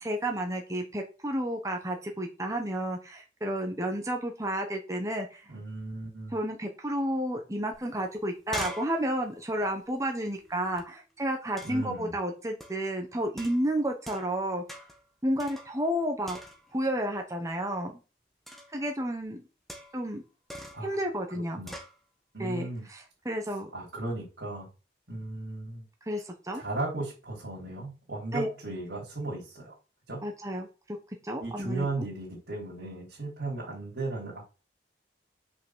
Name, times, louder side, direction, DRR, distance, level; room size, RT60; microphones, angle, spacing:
voice 1, 0.0-5.4 6.3-14.6 15.2-16.4 16.7-17.9 18.7-19.4 19.9-20.2 20.8-21.6 22.4-23.7 26.0-26.6 28.3-28.5 30.2-31.0 31.2-31.9, right 1 dB, 15° right, 3 dB, 1.3 m, -31 dB
voice 2, 5.5-6.4 11.6-12.1 20.7-21.0 21.6-21.8 22.3-22.9 23.7-24.7 25.1-25.9 26.5-29.8 30.1-30.2 31.4-34.4, right 2 dB, 75° right, -5 dB, 3.6 m, -36 dB
sound 1, 7.7-7.8 8.1-10.8 11.6-12.0 12.6-12.9 13.4-14.4 14.7-15.1 15.4-16.0 16.3-16.9 18.5-18.8 19.7-20.1 20.5-20.9 21.7-22.0, equal, ahead, 1.3 m, -43 dB
6.2 x 5.9 x 6.4 m, 0.32 s
head